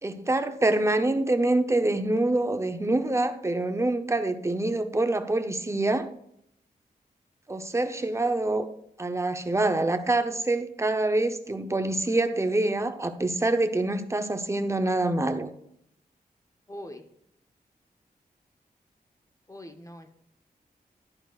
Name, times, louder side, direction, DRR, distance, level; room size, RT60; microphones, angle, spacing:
voice 1, 0.0-6.1 7.5-8.7 9.0-15.5, right 2 dB, 20° right, 8 dB, 0.7 m, -26 dB
voice 2, 16.7-17.1 19.5-20.1, left 1 dB, 20° left, 6 dB, 0.9 m, -42 dB
11.5 x 11.0 x 2.4 m, 0.74 s
wide cardioid pair, 115°, 16 cm